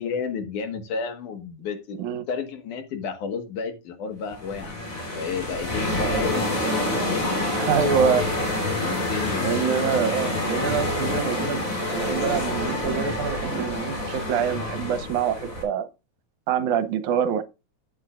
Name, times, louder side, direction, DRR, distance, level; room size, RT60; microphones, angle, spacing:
voice 1, 0.0-2.0 2.3-4.9 5.1-6.5 6.9-7.9 8.8-9.5, left 5 dB, 85° left, 3.1 m, -32 dB
sound 1, 4.3-15.6, left 1 dB, 25° left, 4.0 m, -27 dB
voice 2, 7.6-8.3 9.4-15.9 16.5-17.4, right 7 dB, 80° right, 2.4 m, -25 dB
12.0 x 9.6 x 2.5 m
omnidirectional pair, 3.5 m